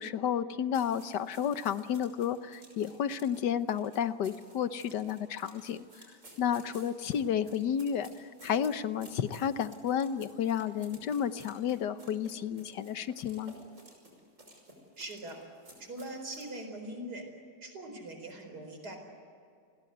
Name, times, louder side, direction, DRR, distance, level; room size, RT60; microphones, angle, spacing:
voice 1, 0.0-5.8 6.4-13.5, left 8 dB, 85° left, 12 dB, 1.6 m, -31 dB
sound 1, 0.7-16.5, right 1 dB, 45° right, 6.2 m, -55 dB
voice 2, 15.0-15.4 15.8-17.2 17.6-19.0, right 1 dB, 70° right, 5 dB, 5.0 m, -42 dB
29.5 x 21.5 x 8.1 m, 2.3 s
omnidirectional pair, 1.8 m